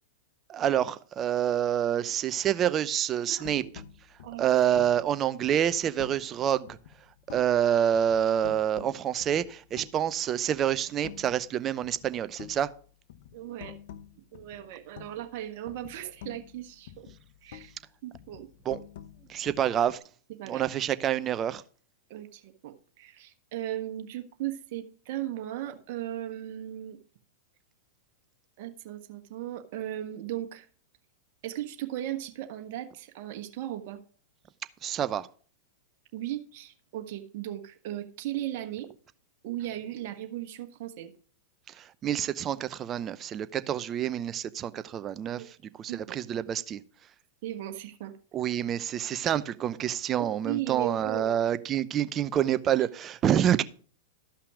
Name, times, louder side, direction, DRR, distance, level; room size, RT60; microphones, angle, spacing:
voice 1, 0.5-3.6 4.4-6.8 7.3-12.7 18.6-18.8 19.3-20.0 20.5-21.6 34.8-35.3 41.7-46.8 48.3-53.6, right 10 dB, 30° right, 0.7 m, -27 dB
voice 2, 3.3-3.7 4.2-4.4 13.3-13.7 14.2-17.1 17.4-17.7 18.0-18.5 20.4-20.7 22.1-27.0 28.6-30.7 31.4-34.0 36.1-38.9 39.4-41.1 45.4-45.5 45.9-46.2 47.4-48.1 50.2-51.4, right 13 dB, 55° right, 1.4 m, -37 dB
sound 1, 3.4-6.4 6.7-7.7 7.9-10.2 10.5-11.5 11.8-15.4 15.7-17.8 18.1-20.0, left 10 dB, 65° left, 0.8 m, -48 dB
13.0 x 5.8 x 4.9 m
hypercardioid pair, 105°, 0 cm